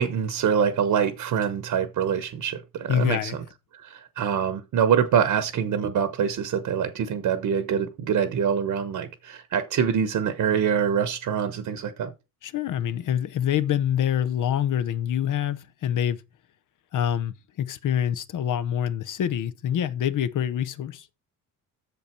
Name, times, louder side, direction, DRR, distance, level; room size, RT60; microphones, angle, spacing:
voice 1, 0.0-3.4 3.7-12.1, right 8 dB, 65° right, 1.1 m, -25 dB
voice 2, 2.9-3.4 12.4-16.2 16.9-21.1, left 10 dB, 60° left, 0.8 m, -26 dB
7.8 x 6.9 x 4.4 m
cardioid pair, 120°, 35 cm